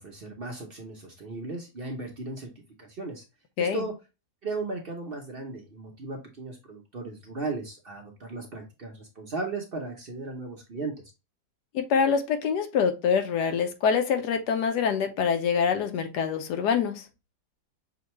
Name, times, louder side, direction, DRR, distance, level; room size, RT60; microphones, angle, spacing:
voice 1, 0.0-2.5 2.8-3.2 3.6-3.9 4.4-10.9, right 3 dB, 45° right, 0.8 m, -36 dB
voice 2, 11.7-17.0, left 6 dB, 85° left, 1.3 m, -25 dB
6.0 x 2.3 x 2.9 m
omnidirectional pair, 1.7 m